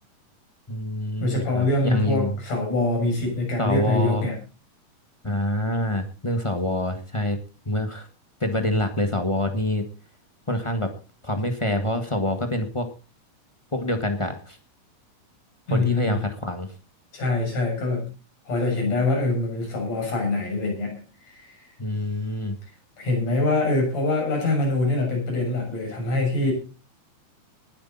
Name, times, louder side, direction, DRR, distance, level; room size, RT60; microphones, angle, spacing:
voice 1, 0.7-2.3 3.6-4.2 5.2-7.4 7.6-8.1 8.4-9.8 10.5-10.9 11.2-12.8 13.7-14.6 15.7-16.7 21.8-22.6, left 1 dB, 35° left, 5 dB, 0.4 m, -26 dB
voice 2, 1.2-4.3 15.7-16.3 17.1-18.1 18.5-21.0 21.2-21.6 23.0-26.5, left 2 dB, 60° left, 1 dB, 8.2 m, -24 dB
20.5 x 9.9 x 4.1 m, 0.34 s
omnidirectional pair, 3.5 m